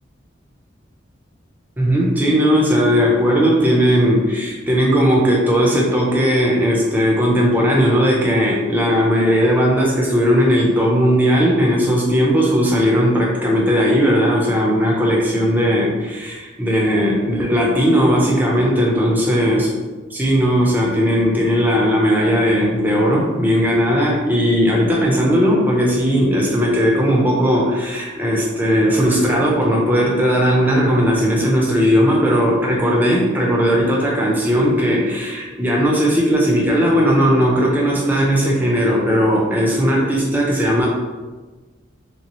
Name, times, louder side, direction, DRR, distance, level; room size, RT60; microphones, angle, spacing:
voice 1, 1.8-19.7 20.1-40.9, equal, 10° right, -3 dB, 0.6 m, -17 dB
3.2 x 2.9 x 3.0 m, 1.3 s
head